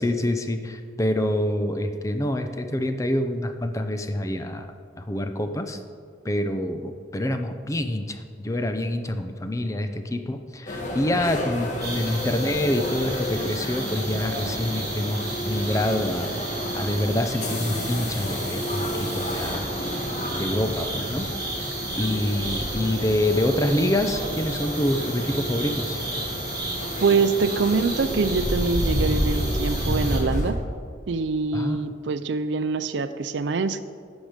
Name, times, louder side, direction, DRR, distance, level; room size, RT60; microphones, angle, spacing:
voice 1, 0.0-4.7 5.0-5.8 6.2-16.3 16.7-19.7 20.4-21.3 22.0-26.0 31.5-31.8, left 1 dB, 20° left, 7 dB, 0.5 m, -26 dB
sound 1, 10.7-30.5, equal, 45° left, 1.3 m, -30 dB
sound 2, 11.8-30.2, right 2 dB, 25° right, 2.8 m, -34 dB
voice 2, 27.0-30.6 31.1-33.8, right 4 dB, 85° right, 12 dB, 0.5 m, -24 dB
11.5 x 6.2 x 5.1 m, 2.2 s
head